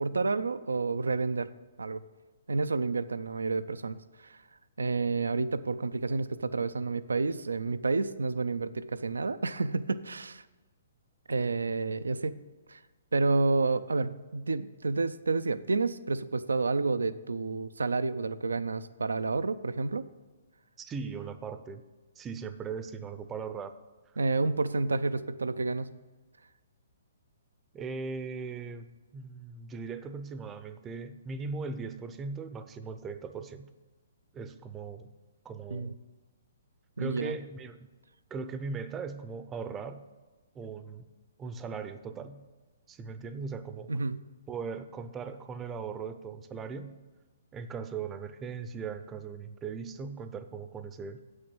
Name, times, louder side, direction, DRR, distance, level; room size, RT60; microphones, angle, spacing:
voice 1, 0.0-1.5 1.8-2.0 2.5-4.0 4.2-4.4 4.8-10.4 11.3-12.4 12.7-12.8 13.1-20.0 24.2-25.9 35.7-35.9 37.0-37.4 43.9-44.3, right 3 dB, 85° right, 14 dB, 0.4 m, -30 dB
voice 2, 20.8-21.8 22.2-23.7 27.7-28.9 29.1-33.7 34.3-35.1 35.4-35.9 37.0-37.9 38.3-40.0 40.5-41.1 41.4-42.4 42.9-43.9 44.5-47.0 47.5-51.2, right 5 dB, 15° right, 11 dB, 0.6 m, -39 dB
7.9 x 6.4 x 6.1 m, 1.3 s
hypercardioid pair, 135°, 0 cm